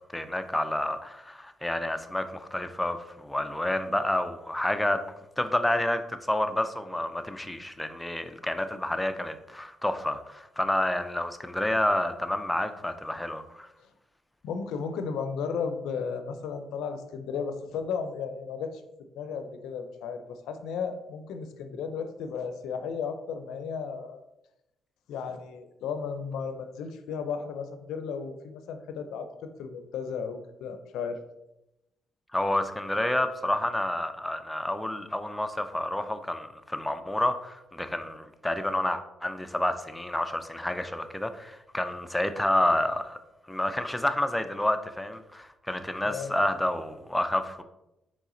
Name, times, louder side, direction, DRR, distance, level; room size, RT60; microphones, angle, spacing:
voice 1, 0.1-5.0 5.4-13.7 32.3-43.2 43.5-47.6, left 1 dB, 10° left, 8 dB, 0.4 m, -29 dB
voice 2, 14.4-18.8 19.1-24.2 25.1-31.2 46.0-46.4, left 6 dB, 85° left, 8 dB, 0.4 m, -34 dB
4.0 x 3.2 x 3.7 m, 0.91 s
cardioid pair, 90°, 0 cm